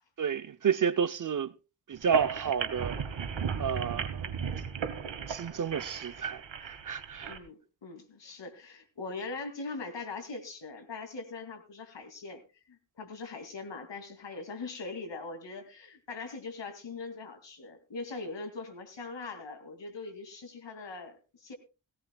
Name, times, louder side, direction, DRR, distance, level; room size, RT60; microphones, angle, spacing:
voice 1, 0.2-1.5 1.9-3.0 3.6-4.3 5.3-7.3, right 7 dB, 45° right, 0.6 m, -31 dB
sound 1, 2.0-7.4, right 6 dB, 85° right, 1.5 m, -35 dB
voice 2, 7.3-12.4 12.7-21.5, left 3 dB, 80° left, 2.6 m, -41 dB
18.0 x 16.5 x 2.3 m
wide cardioid pair, 130°, 43 cm